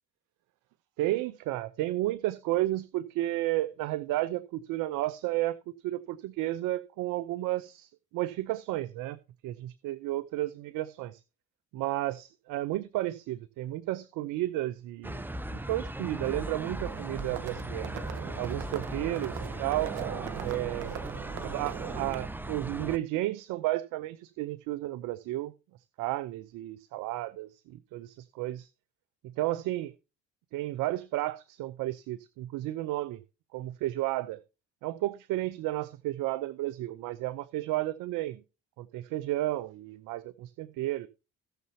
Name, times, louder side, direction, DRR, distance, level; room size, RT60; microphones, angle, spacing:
voice 1, 1.0-5.6 5.8-9.2 9.4-11.2 11.7-17.9 18.4-20.0 20.4-21.0 21.4-25.5 26.0-28.7 29.4-29.9 30.5-33.2 33.5-34.4 34.8-38.4 38.8-41.1, right 16 dB, 70° right, 0.7 m, -32 dB
Vegas Arcade, 15.0-23.0, right 1 dB, 5° right, 0.6 m, -38 dB
Livestock farm animals working animals, 16.4-22.2, right 10 dB, 85° right, 1.2 m, -40 dB
17.5 x 6.8 x 2.8 m
supercardioid pair, 75°, 33 cm